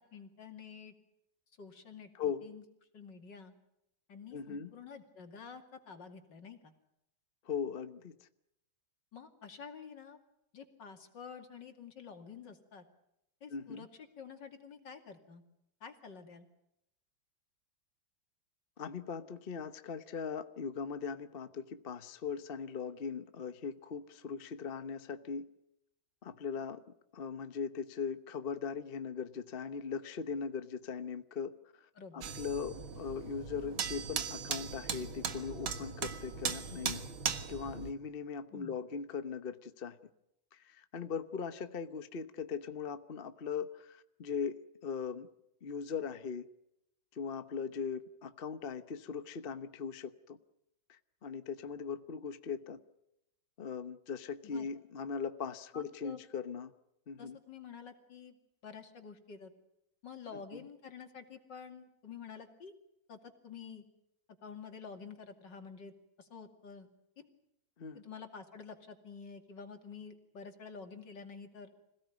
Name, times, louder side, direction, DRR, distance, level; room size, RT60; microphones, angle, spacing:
voice 1, 0.1-0.9 1.6-2.6 2.9-3.5 4.1-6.7 9.1-10.2 10.5-12.8 13.4-15.4 15.8-16.5 32.0-32.2 38.5-38.7 54.4-54.7 55.7-56.2 57.2-58.4 58.6-59.5 60.0-62.7 63.1-63.8 64.4-66.9 67.2-67.3 67.9-71.7, left 6 dB, 65° left, 5 dB, 3.1 m, -49 dB
voice 2, 2.1-2.5 4.3-4.7 7.4-8.1 13.5-13.9 18.8-25.5 26.2-26.8 27.1-37.0 37.5-40.0 40.5-45.3 45.6-46.5 47.1-50.4 50.9-52.8 53.6-56.7 57.1-57.4 60.5-60.6 67.8-68.0, left 6 dB, 40° left, 11 dB, 0.8 m, -40 dB
sound 1, 32.2-37.9, right 6 dB, 90° right, 2.3 m, -38 dB
26.5 x 17.0 x 9.3 m, 0.83 s
omnidirectional pair, 2.1 m